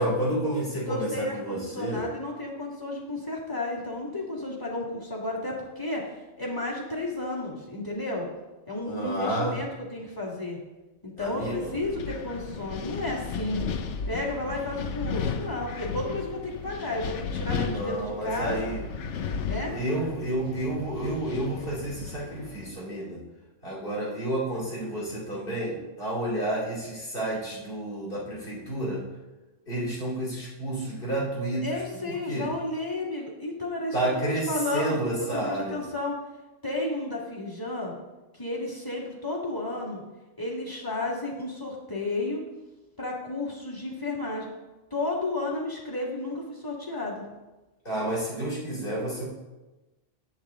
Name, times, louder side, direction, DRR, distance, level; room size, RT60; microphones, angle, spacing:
voice 1, 0.0-2.0 8.8-9.6 11.2-11.7 17.5-18.8 19.7-23.2 23.6-29.0 29.7-32.5 33.9-35.9 47.8-49.3, right 1 dB, 45° left, -5 dB, 2.9 m, -30 dB
voice 2, 0.9-8.3 8.7-10.6 11.0-13.6 14.1-18.7 19.5-19.7 31.6-36.2 36.6-37.9 38.3-40.0 40.4-42.4 43.0-44.5 44.9-47.3, left 2 dB, 15° left, -4 dB, 1.9 m, -32 dB
Wind, 11.2-22.7, left 6 dB, 70° left, 1.0 m, -35 dB
8.8 x 8.0 x 3.7 m, 1.1 s
omnidirectional pair, 1.3 m